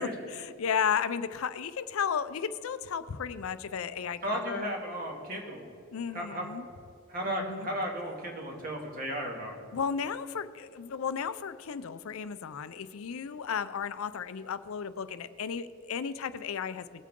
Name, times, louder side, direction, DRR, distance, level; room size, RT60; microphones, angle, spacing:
voice 1, 0.0-4.7 5.9-6.7 7.3-7.7 9.7-17.0, left 7 dB, 75° left, 13 dB, 0.5 m, -34 dB
voice 2, 4.2-5.7 6.1-6.5 7.1-9.6, equal, 40° right, 0 dB, 2.2 m, -34 dB
19.5 x 8.3 x 3.7 m, 2.7 s
head